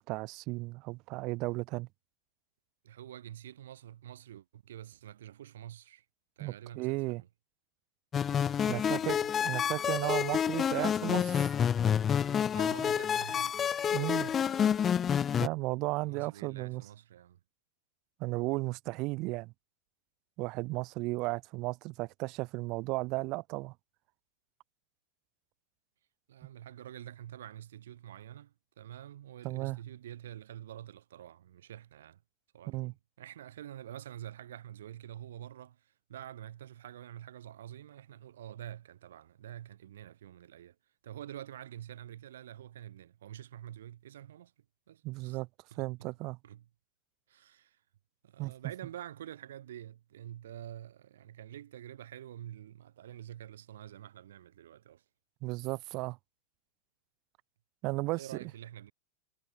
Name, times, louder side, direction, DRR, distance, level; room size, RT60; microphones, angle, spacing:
voice 1, 0.0-1.9 6.4-7.2 8.7-9.2 9.4-11.5 13.9-14.3 15.4-16.9 18.2-19.5 20.4-23.7 29.4-29.8 32.7-32.9 45.0-45.5 45.8-46.4 48.4-48.5 55.4-56.2 57.8-58.3, right 23 dB, 45° right, 0.6 m, -34 dB
voice 2, 2.8-6.0 6.4-7.3 8.6-9.8 12.5-14.7 15.9-17.4 21.2-21.3 26.3-32.2 32.5-40.7 41.0-44.5 44.9-45.4 45.7-46.1 46.4-46.7 47.3-47.8 48.2-55.0 58.1-58.9, right 11 dB, 80° right, 3.3 m, -47 dB
sound 1, 8.1-15.5, left 8 dB, 25° left, 1.3 m, -29 dB
hypercardioid pair, 120°, 0 cm